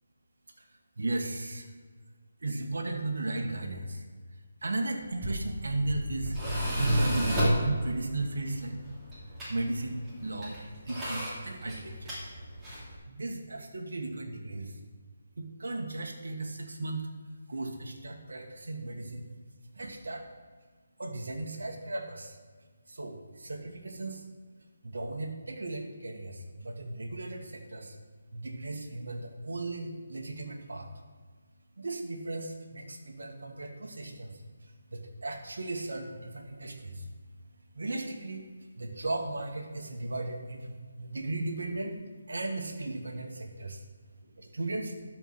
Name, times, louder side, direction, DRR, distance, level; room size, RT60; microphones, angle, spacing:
voice 1, 1.0-1.7 2.4-4.0 4.6-6.4 6.8-8.8 9.5-10.6 10.8-12.1 13.1-14.8 15.4-17.1 17.5-19.3 19.8-20.3 21.0-22.4 22.9-24.2 24.8-28.0 28.3-30.9 31.8-37.1 37.7-42.0 42.3-43.8 44.5-45.0, right 2 dB, 80° right, 3 dB, 1.5 m, -36 dB
Tools, 5.0-13.0, right 1 dB, 10° right, 2.5 m, -32 dB
12.5 x 4.6 x 5.9 m, 1.5 s
figure-of-eight pair, 160°, 0 cm